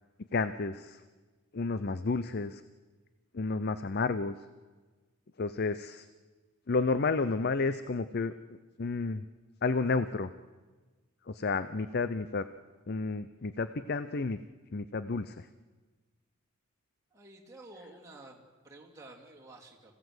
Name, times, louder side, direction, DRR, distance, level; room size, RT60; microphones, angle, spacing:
voice 1, 0.3-1.0 1.5-2.6 3.3-4.3 5.4-6.1 6.7-9.3 9.6-10.3 11.3-12.4 12.9-14.4 14.7-15.5, left 3 dB, 50° left, 13 dB, 0.6 m, -31 dB
voice 2, 17.1-20.0, right 2 dB, 15° right, -2 dB, 2.9 m, -51 dB
26.0 x 16.5 x 8.0 m, 1.4 s
head